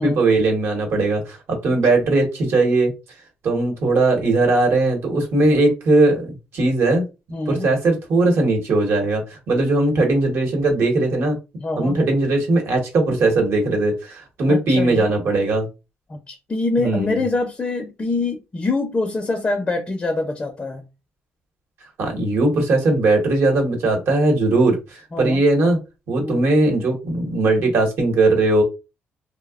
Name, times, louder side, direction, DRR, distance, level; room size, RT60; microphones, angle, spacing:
voice 1, 0.0-2.9 3.4-7.0 7.5-11.4 11.8-15.7 16.8-17.2 22.0-25.8 26.1-28.6, right 2 dB, 65° right, 2 dB, 1.0 m, -19 dB
voice 2, 7.3-7.7 11.6-12.0 14.5-15.1 16.1-20.8 25.1-25.4 26.2-26.4, left 2 dB, 25° left, 4 dB, 0.5 m, -24 dB
2.7 x 2.0 x 2.3 m, 0.28 s
cardioid pair, 110°, 4 cm